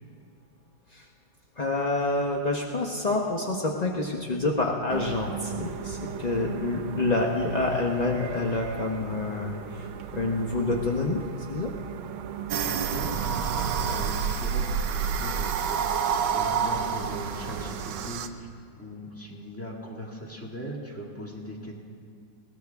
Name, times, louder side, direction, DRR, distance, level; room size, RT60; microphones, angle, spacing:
voice 1, 1.6-11.2 11.5-11.7, left 2 dB, 45° left, 0 dB, 0.5 m, -27 dB
sound 1, 4.9-18.1, right 8 dB, 90° right, 1.5 m, -39 dB
sound 2, 12.5-18.3, right 7 dB, 70° right, 1.3 m, -28 dB
voice 2, 12.6-18.5 18.8-21.7, equal, 5° left, -1 dB, 1.7 m, -39 dB
21.0 x 17.5 x 3.5 m, 2.2 s
omnidirectional pair, 2.2 m